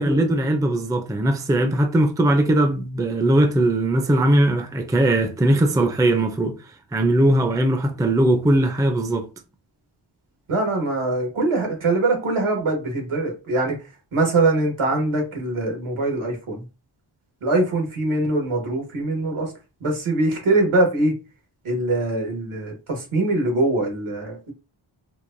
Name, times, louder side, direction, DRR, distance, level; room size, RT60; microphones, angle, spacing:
voice 1, 0.0-6.6 6.9-9.3, right 1 dB, 10° right, 0.4 m, -19 dB
voice 2, 10.5-13.8 14.1-16.6 17.4-19.5 19.8-21.1 21.6-24.5, right 2 dB, 90° right, 1.4 m, -22 dB
4.6 x 2.2 x 2.5 m
wide cardioid pair, 115°, 49 cm